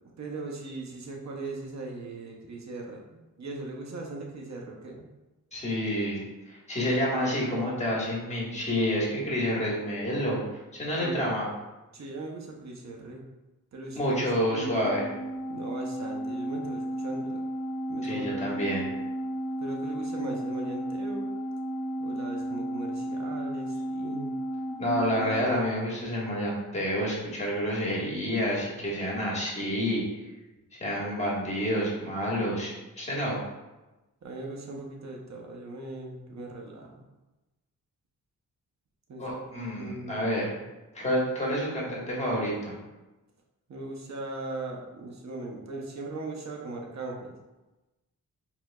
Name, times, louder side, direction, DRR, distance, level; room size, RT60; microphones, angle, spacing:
voice 1, 0.2-5.1 11.0-11.2 11.9-13.2 13.7-14.1 14.5-14.6 15.5-17.4 17.9-18.4 19.6-21.3 22.0-24.3 34.2-37.0 39.1-39.4 39.7-40.6 43.7-47.3, right 2 dB, 55° right, 0 dB, 0.8 m, -39 dB
voice 2, 5.5-10.4 10.7-11.5 13.9-15.1 18.0-18.9 24.8-30.0 30.8-33.4 39.2-40.5 40.9-42.7, equal, 20° left, -4 dB, 1.4 m, -29 dB
Organ, 14.6-25.8, right 1 dB, 5° left, 1.3 m, -33 dB
4.6 x 3.5 x 2.3 m, 1.1 s
wide cardioid pair, 100°, 34 cm